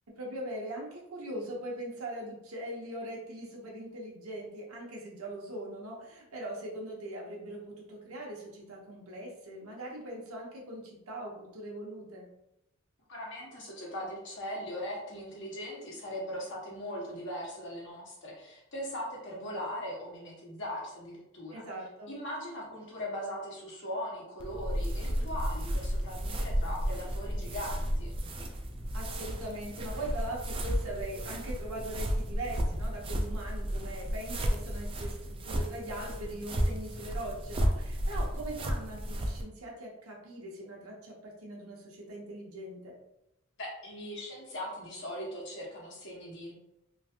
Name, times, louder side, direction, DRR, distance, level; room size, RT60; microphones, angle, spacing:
voice 1, 0.2-12.3 21.5-22.1 28.9-42.9, right 1 dB, 85° right, -1 dB, 0.9 m, -41 dB
voice 2, 13.1-21.6 22.1-28.1 43.6-46.5, equal, 60° left, -4 dB, 1.1 m, -39 dB
sound 1, 24.4-39.4, equal, 25° right, 0.3 m, -33 dB
3.1 x 2.5 x 2.7 m, 0.85 s
head